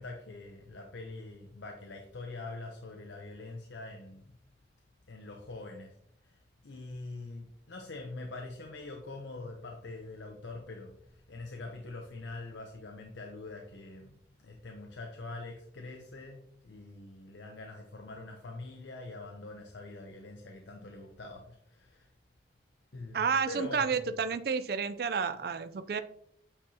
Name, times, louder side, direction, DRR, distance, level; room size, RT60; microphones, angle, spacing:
voice 1, 0.0-4.3 5.1-6.0 6.2-22.1 22.9-24.2, left 2 dB, 85° left, 2 dB, 0.8 m, -44 dB
voice 2, 23.1-26.0, right 5 dB, 55° right, 11 dB, 0.4 m, -30 dB
8.6 x 4.7 x 2.8 m, 0.69 s
head